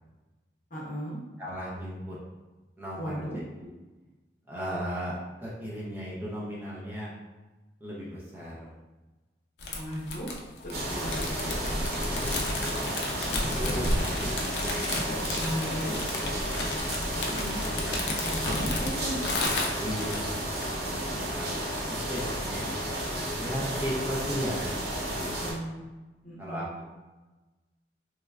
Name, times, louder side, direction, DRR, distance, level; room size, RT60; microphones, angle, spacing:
voice 1, 0.7-1.2 3.0-3.4 9.8-10.3 10.6-12.2 15.4-16.0 17.1-17.6 18.2-19.2 20.9-21.5 25.1-25.8 26.2-26.7, equal, 50° left, -6 dB, 0.8 m, -37 dB
voice 2, 1.4-2.2 2.8-3.7 4.5-7.1 7.8-8.7 12.1-14.6 18.4-18.7 19.8-22.7 23.4-24.8 26.4-26.8, equal, 10° right, -6 dB, 0.4 m, -36 dB
sound 1, 9.6-20.2, left 2 dB, 70° left, 0.4 m, -33 dB
sound 2, 10.7-25.5, right 1 dB, 60° right, 0.7 m, -32 dB
3.0 x 2.2 x 2.3 m, 1.2 s
head